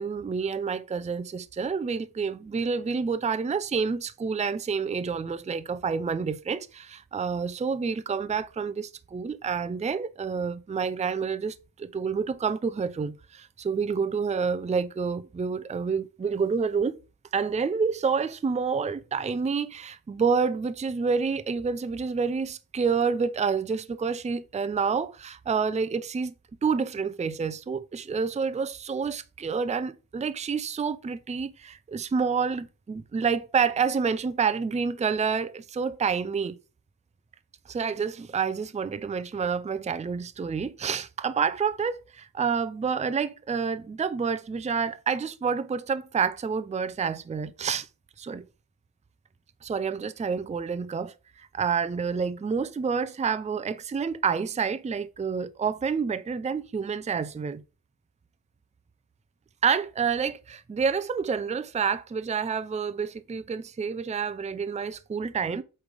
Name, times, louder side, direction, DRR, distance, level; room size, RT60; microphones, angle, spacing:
voice 1, 0.0-17.0 17.3-26.3 26.6-36.6 37.7-47.9 48.2-48.5 49.6-57.6 59.6-65.6, right 5 dB, 20° right, 0.4 m, -28 dB
8.1 x 3.3 x 5.2 m
wide cardioid pair, 130°, 36 cm